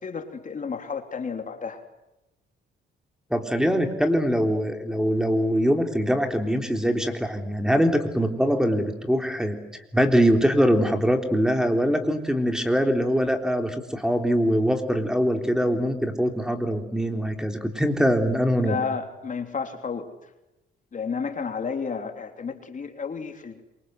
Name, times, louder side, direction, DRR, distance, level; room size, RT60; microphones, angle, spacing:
voice 1, 0.0-1.8 18.6-20.1 20.9-23.6, left 5 dB, 40° left, 5 dB, 3.4 m, -31 dB
voice 2, 3.3-9.6 9.9-18.8, equal, 5° right, 5 dB, 3.6 m, -23 dB
27.0 x 24.5 x 8.0 m, 0.95 s
cardioid pair, 90°, 20 cm